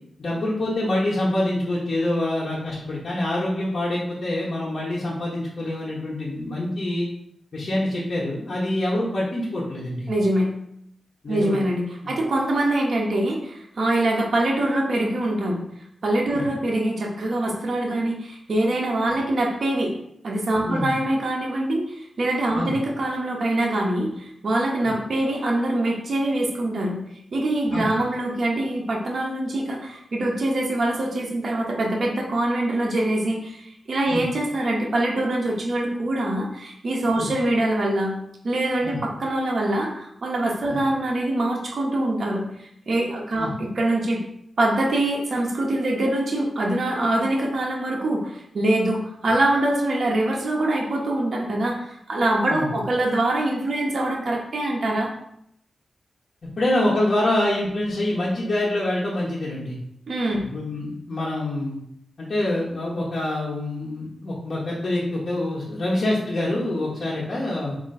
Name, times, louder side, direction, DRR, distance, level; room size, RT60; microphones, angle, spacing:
voice 1, 0.2-7.1 7.5-10.1 11.2-11.6 12.0-12.1 16.3-16.4 20.6-20.9 22.5-22.8 27.7-27.9 34.1-34.2 37.2-37.3 38.8-39.0 40.7-40.8 43.4-43.5 52.5-52.8 56.6-59.8 60.4-61.8 62.2-67.8, left 1 dB, 60° left, -7 dB, 1.1 m, -26 dB
voice 2, 10.1-10.5 11.3-15.6 16.0-19.9 20.2-27.0 27.3-38.2 38.4-44.2 44.6-55.1 60.1-60.5, right 1 dB, 65° right, -2 dB, 1.0 m, -24 dB
3.7 x 2.9 x 4.2 m, 0.75 s
cardioid pair, 55°, 0 cm